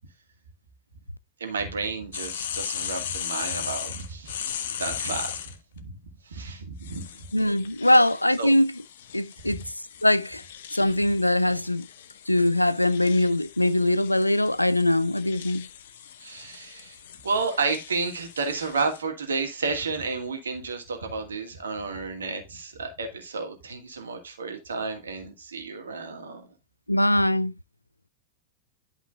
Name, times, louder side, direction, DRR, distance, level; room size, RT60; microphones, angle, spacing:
voice 1, 1.4-5.4 5.7-5.9 6.3-7.3 7.9-8.0 8.4-8.5 9.5-9.6 16.2-17.0 17.2-26.5, right 4 dB, 70° right, 2.2 m, -31 dB
sound 1, 2.1-5.6 6.8-19.0, left 9 dB, 60° left, 0.9 m, -38 dB
voice 2, 7.3-8.7 9.1-9.6 10.0-10.4 10.7-11.9 12.3-15.7 26.9-27.5, left 1 dB, 85° left, 0.4 m, -22 dB
11.5 x 5.6 x 2.4 m
figure-of-eight pair, 90°, 0 cm